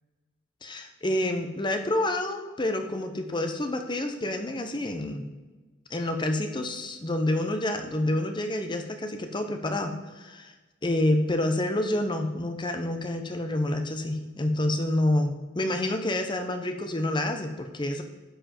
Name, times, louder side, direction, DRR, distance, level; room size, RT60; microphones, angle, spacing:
voice 1, 0.6-5.3 5.9-10.5 10.8-18.0, left 1 dB, 25° left, 6 dB, 0.8 m, -28 dB
10.0 x 5.0 x 4.4 m, 1.2 s
head